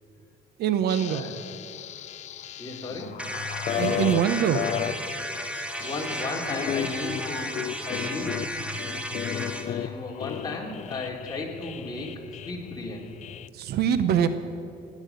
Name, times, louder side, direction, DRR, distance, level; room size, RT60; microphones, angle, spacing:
voice 1, 0.6-1.3 3.8-4.6 13.5-14.3, right 9 dB, 70° right, 12 dB, 0.9 m, -23 dB
sound 1, 0.9-13.5, left 11 dB, 45° left, 0.4 m, -34 dB
voice 2, 2.6-3.2 5.8-13.1, left 2 dB, 25° left, -1 dB, 2.8 m, -35 dB
sound 2, 3.2-9.7, equal, 5° right, 1.3 m, -34 dB
18.0 x 9.6 x 6.9 m, 2.5 s
cardioid pair, 110°, 17 cm